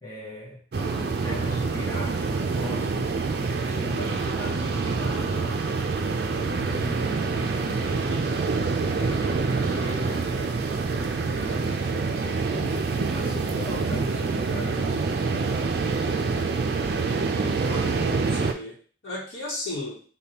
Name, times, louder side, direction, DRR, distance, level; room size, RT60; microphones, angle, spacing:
voice 1, 0.0-3.1 3.5-5.9 6.3-8.5 8.9-15.7, left 1 dB, 20° left, -3 dB, 0.8 m, -39 dB
sound 1, 0.7-18.5, right 4 dB, 60° right, 0.4 m, -26 dB
voice 2, 17.3-18.8 19.0-20.0, left 1 dB, 85° left, -8 dB, 1.0 m, -35 dB
5.1 x 2.2 x 2.8 m, 0.41 s
head